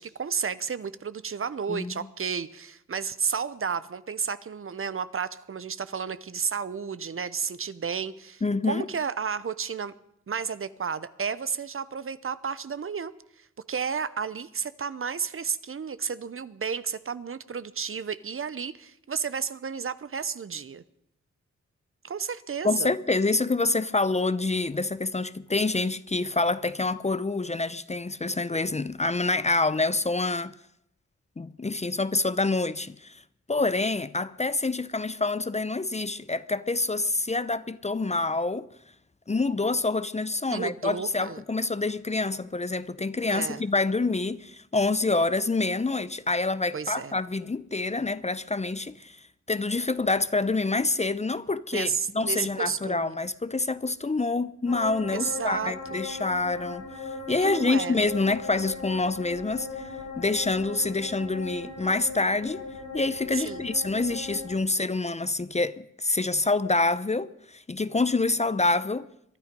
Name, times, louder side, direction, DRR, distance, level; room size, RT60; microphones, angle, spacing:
voice 1, 0.0-8.4 8.7-9.9 10.3-20.8 22.0-22.9 40.5-41.4 43.3-43.6 46.7-47.1 51.7-53.1 55.1-56.0 57.4-57.9 63.3-63.7, right 6 dB, 45° right, 0.8 m, -32 dB
voice 2, 8.4-8.9 22.6-30.5 31.4-33.2 33.5-38.7 39.3-49.2 49.5-62.6 62.9-69.1, left 3 dB, 25° left, 0.6 m, -27 dB
sound 1, 54.7-64.5, left 3 dB, 85° left, 5.6 m, -38 dB
22.5 x 12.0 x 5.3 m
cardioid pair, 65°, 29 cm